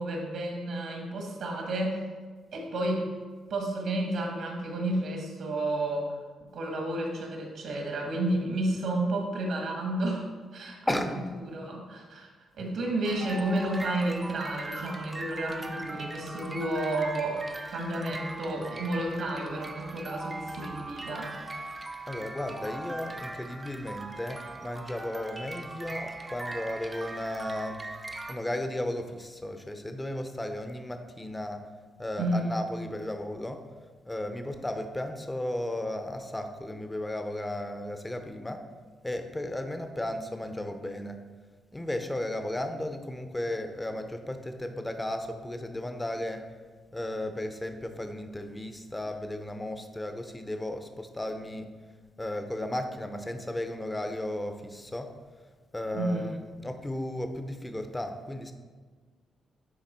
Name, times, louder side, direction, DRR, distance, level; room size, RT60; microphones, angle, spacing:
voice 1, 0.0-2.0 2.5-3.1 3.5-6.2 6.5-10.3 10.5-11.0 11.4-12.3 12.6-21.4 32.2-32.5 55.9-56.2, right 1 dB, 75° right, 1 dB, 1.5 m, -31 dB
voice 2, 10.9-11.3 12.6-12.7 22.1-31.6 32.0-33.6 34.0-38.6 39.0-41.2 41.7-46.5 46.9-51.8 52.2-55.1 55.7-58.5, left 1 dB, 15° left, 7 dB, 0.7 m, -35 dB
sound 1, 13.0-28.3, right 2 dB, 25° right, 0.6 m, -40 dB
9.5 x 3.5 x 4.3 m, 1.5 s
cardioid pair, 80°, 0 cm